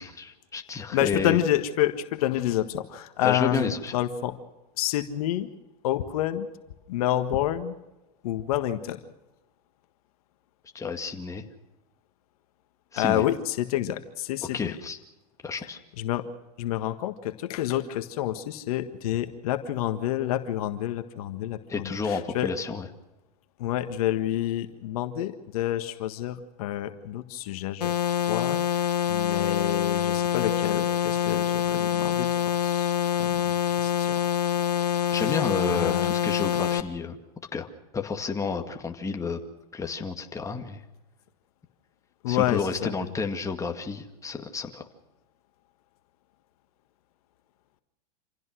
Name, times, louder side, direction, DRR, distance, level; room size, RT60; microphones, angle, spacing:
voice 1, 0.0-1.4 3.2-4.0 10.7-11.4 12.9-13.2 14.5-15.0 15.4-15.8 21.7-22.9 35.1-37.2 37.5-37.7 37.9-39.4 39.7-40.8 42.3-44.9, left 4 dB, 15° left, 4 dB, 2.1 m, -31 dB
voice 2, 0.9-4.3 4.8-5.5 5.8-6.5 6.9-7.8 8.2-9.0 13.0-14.7 16.0-16.2 16.6-22.5 23.6-34.3 35.0-35.4 35.7-36.1 42.2-42.9, left 12 dB, 65° left, 8 dB, 1.6 m, -29 dB
sound 1, 27.8-36.8, left 10 dB, 90° left, 1.6 m, -25 dB
27.0 x 16.5 x 6.3 m, 1.0 s
hypercardioid pair, 110°, 20 cm